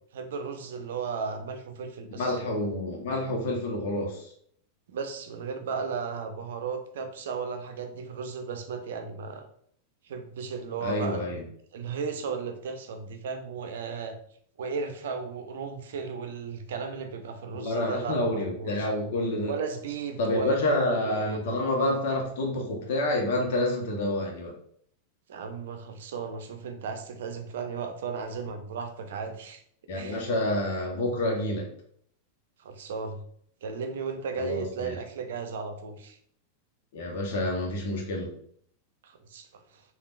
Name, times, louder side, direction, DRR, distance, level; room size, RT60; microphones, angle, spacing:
voice 1, 0.1-2.4 4.9-9.5 10.0-11.4 11.7-14.2 14.6-18.9 19.5-21.4 25.3-29.6 29.9-30.3 32.6-33.2 33.6-36.2 39.0-39.8, right 5 dB, 70° right, 7 dB, 0.5 m, -35 dB
voice 2, 2.1-4.3 10.8-11.4 17.5-19.5 20.2-24.5 29.9-31.7 34.4-35.0 36.9-38.3, left 1 dB, 65° left, 0 dB, 1.0 m, -28 dB
3.5 x 2.4 x 2.5 m, 0.64 s
hypercardioid pair, 100°, 0 cm